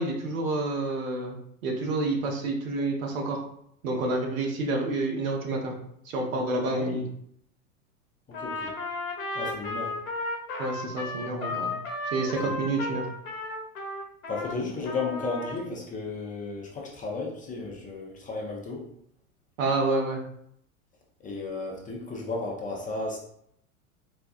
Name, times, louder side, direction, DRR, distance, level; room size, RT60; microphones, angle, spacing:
voice 1, 0.0-3.4 3.8-5.7 6.1-7.1 10.6-11.7 12.1-13.1 19.6-20.2, right 2 dB, 65° right, 1 dB, 0.9 m, -28 dB
voice 2, 6.7-7.0 8.3-8.7 9.3-9.9 12.4-12.5 14.3-18.8 21.2-23.2, left 3 dB, 20° left, -2 dB, 0.6 m, -34 dB
Trumpet, 8.3-14.5 14.8-15.6, left 2 dB, 70° left, 0.9 m, -34 dB
4.0 x 2.3 x 2.4 m, 0.70 s
hypercardioid pair, 90°, 43 cm